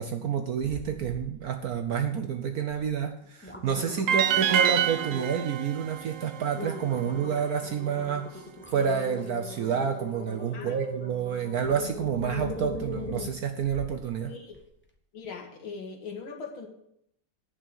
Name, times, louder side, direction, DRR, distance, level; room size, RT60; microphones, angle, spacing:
voice 1, 0.0-8.5 8.7-14.3, right 7 dB, 65° right, 6 dB, 0.9 m, -29 dB
sound 1, 0.6-1.3 1.6-2.1 2.7-2.8 3.2-5.5 6.0-6.1 6.5-14.0 14.5-14.6, left 1 dB, 10° left, 0.7 m, -39 dB
sound 2, 4.1-7.2, right 9 dB, 90° right, 1.6 m, -27 dB
voice 2, 14.3-14.6 15.1-16.7, left 5 dB, 70° left, 2 dB, 2.6 m, -40 dB
9.6 x 6.3 x 7.7 m, 0.75 s
omnidirectional pair, 2.3 m